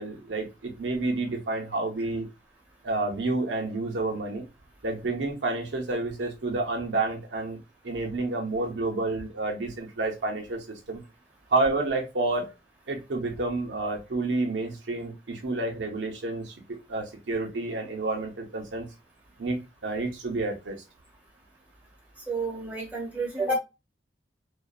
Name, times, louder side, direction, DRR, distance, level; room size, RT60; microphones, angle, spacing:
voice 1, 0.0-2.3 2.8-4.4 4.8-11.0 11.5-12.5 12.9-18.9 19.4-20.8, right 2 dB, 90° right, 2 dB, 0.7 m, -29 dB
voice 2, 22.3-23.6, right 2 dB, 10° right, -3 dB, 1.1 m, -29 dB
2.6 x 2.3 x 2.3 m, 0.25 s
head